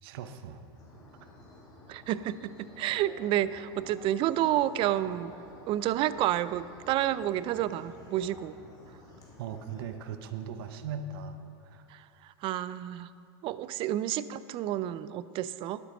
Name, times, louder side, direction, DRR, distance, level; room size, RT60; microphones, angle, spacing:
voice 1, 0.0-0.6 1.2-1.3 9.4-11.4 11.6-11.9, right 6 dB, 65° right, 9 dB, 0.9 m, -39 dB
sound 1, 0.7-9.9, left 1 dB, 30° left, 2.9 m, -52 dB
voice 2, 1.9-5.3 5.7-8.6 11.9-13.1 13.4-15.8, right 13 dB, 40° right, 16 dB, 0.4 m, -30 dB
11.5 x 8.2 x 5.3 m, 2.5 s
hypercardioid pair, 105°, 13 cm